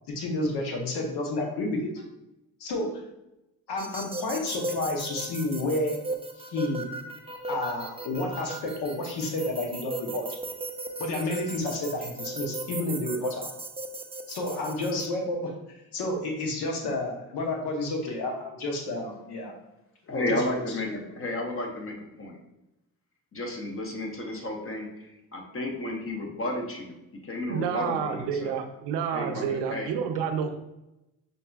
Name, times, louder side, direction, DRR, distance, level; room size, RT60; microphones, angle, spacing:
voice 1, 0.1-2.0 2.6-2.9 3.7-6.0 6.5-6.8 7.5-10.2 11.0-13.5 14.3-15.5 15.9-19.5 20.1-21.0, left 2 dB, 75° left, 2 dB, 0.9 m, -30 dB
sound 1, 3.8-15.1, right 2 dB, 15° right, 0.5 m, -37 dB
voice 2, 20.1-22.4 23.3-28.5 29.1-29.9, left 1 dB, 30° left, 1 dB, 1.0 m, -33 dB
voice 3, 27.5-30.5, right 7 dB, 85° right, 6 dB, 0.6 m, -29 dB
5.3 x 2.6 x 2.3 m, 0.92 s
supercardioid pair, 60°, 40 cm